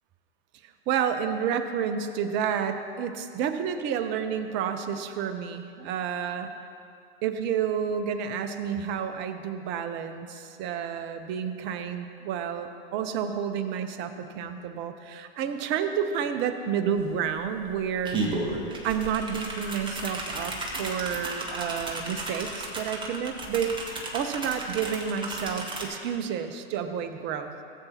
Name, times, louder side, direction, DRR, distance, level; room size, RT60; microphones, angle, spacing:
voice 1, 0.9-6.5 7.2-18.2 18.8-23.8 24.1-27.5, right 8 dB, 35° right, 8 dB, 0.8 m, -30 dB
sound 1, 17.0-17.1 17.4-25.9, right 2 dB, 15° right, 1.4 m, -34 dB
17.0 x 8.2 x 2.9 m, 2.4 s
figure-of-eight pair, 100°, 32 cm